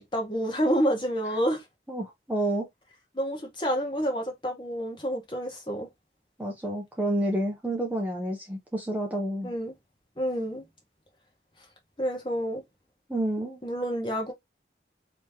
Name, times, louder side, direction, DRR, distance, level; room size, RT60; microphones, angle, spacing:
voice 1, 0.0-1.6 3.1-5.9 9.4-9.7 10.2-10.6 12.0-12.6 13.6-14.3, equal, 25° left, 1.2 m, -28 dB
voice 2, 1.9-2.7 6.4-9.5 13.1-13.6, right 1 dB, 10° right, 0.7 m, -29 dB
3.0 x 3.0 x 3.5 m
head